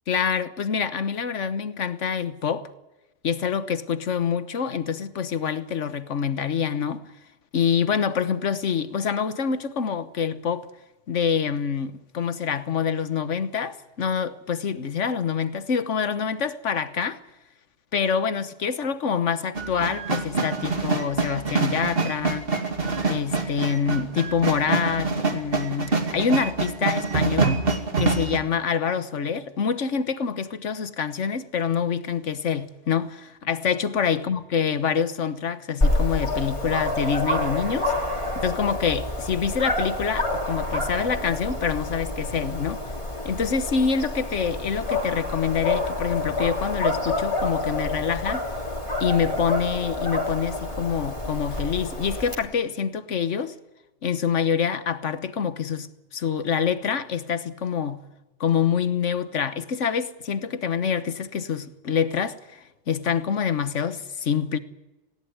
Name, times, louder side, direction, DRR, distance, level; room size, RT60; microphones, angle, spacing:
voice 1, 0.1-2.7 3.2-7.0 7.5-10.7 11.1-17.2 17.9-22.5 23.1-27.6 28.0-37.9 38.3-42.8 43.2-48.5 49.0-53.5 54.0-58.0 58.4-64.6, left 7 dB, 90° left, 1.5 m, -26 dB
sound 1, 19.5-28.4, right 3 dB, 50° right, 2.6 m, -25 dB
Dog, 35.8-52.3, left 1 dB, 25° left, 3.3 m, -28 dB
19.5 x 17.5 x 9.5 m
omnidirectional pair, 1.2 m